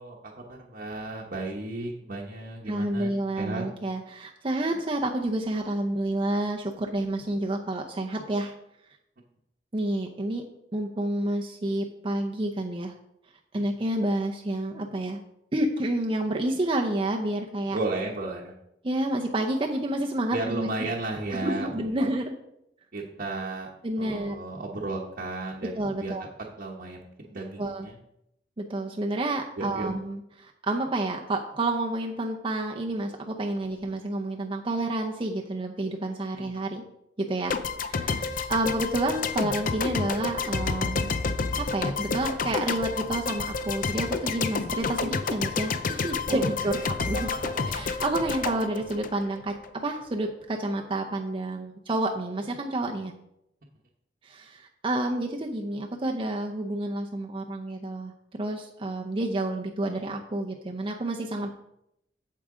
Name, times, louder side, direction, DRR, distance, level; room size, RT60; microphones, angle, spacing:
voice 1, 0.0-3.6 17.7-18.5 20.3-21.9 22.9-23.7 24.0-26.1 26.6-28.0 29.6-29.9 36.4-36.5 46.3-46.8 47.3-47.8, right 2 dB, 55° right, -3 dB, 1.0 m, -34 dB
voice 2, 2.7-8.5 9.7-10.4 10.7-12.9 13.5-15.2 15.5-17.8 18.8-20.7 21.3-22.3 23.8-24.4 25.8-26.3 27.6-27.9 28.6-36.8 37.2-37.5 37.8-41.2 41.5-47.3 47.7-53.1 54.2-58.1 58.4-61.5, right 1 dB, 30° right, 1 dB, 0.6 m, -29 dB
sound 1, 37.5-49.7, left 4 dB, 50° left, 0.6 m, -29 dB
8.5 x 7.6 x 3.7 m, 0.80 s
head